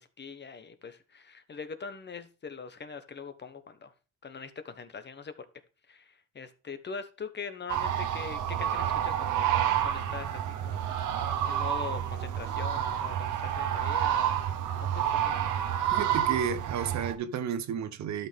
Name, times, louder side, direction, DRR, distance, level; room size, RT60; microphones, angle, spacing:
voice 1, 0.0-3.9 4.2-5.3 5.9-14.4 14.8-15.3, left 5 dB, 35° left, 1.2 m, -43 dB
sound 1, 7.7-17.1, right 10 dB, 85° right, 1.0 m, -29 dB
voice 2, 15.9-18.3, right 7 dB, 65° right, 0.9 m, -32 dB
12.0 x 5.8 x 3.5 m
cardioid pair, 90°, 30 cm